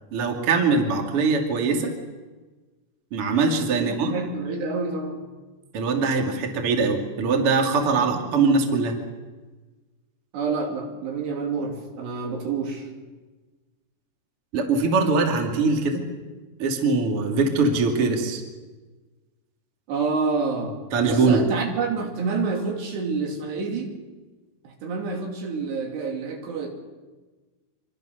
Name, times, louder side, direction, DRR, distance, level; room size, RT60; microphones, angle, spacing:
voice 1, 0.1-1.9 3.1-4.1 5.7-8.9 14.5-16.0 16.6-18.4 20.9-21.4, right 4 dB, 35° right, 2 dB, 3.0 m, -22 dB
voice 2, 3.7-5.2 7.9-8.3 10.3-12.9 19.9-20.8 21.0-23.9 24.6-26.7, right 4 dB, 75° right, 2 dB, 4.8 m, -28 dB
25.5 x 24.0 x 6.7 m, 1.3 s
omnidirectional pair, 4.9 m